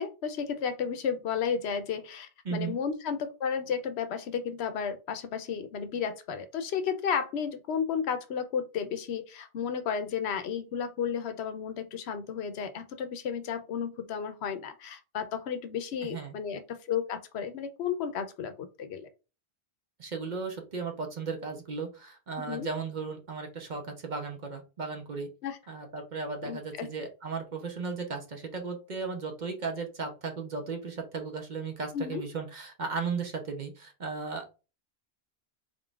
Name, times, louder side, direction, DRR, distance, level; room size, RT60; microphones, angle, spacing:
voice 1, 0.0-19.1 22.4-22.7 25.4-25.6 26.4-26.9 31.9-32.2, left 7 dB, 80° left, 9 dB, 0.9 m, -33 dB
voice 2, 16.0-16.3 20.0-25.3 25.7-34.5, right 4 dB, 45° right, 3 dB, 0.9 m, -36 dB
3.8 x 3.7 x 2.3 m, 0.31 s
omnidirectional pair, 1.1 m